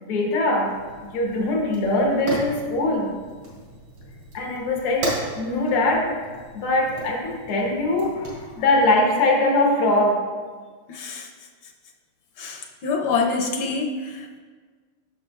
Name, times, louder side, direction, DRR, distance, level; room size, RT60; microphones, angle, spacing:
voice 1, 0.0-0.7 1.1-3.1 4.3-6.1 6.5-10.2, left 2 dB, 90° left, 0 dB, 2.0 m, -22 dB
Fire, 0.6-9.0, right 1 dB, 90° right, 3.1 m, -36 dB
voice 2, 10.9-11.3 12.4-14.4, left 4 dB, 75° left, 2 dB, 1.5 m, -26 dB
9.8 x 6.9 x 2.3 m, 1.5 s
omnidirectional pair, 2.3 m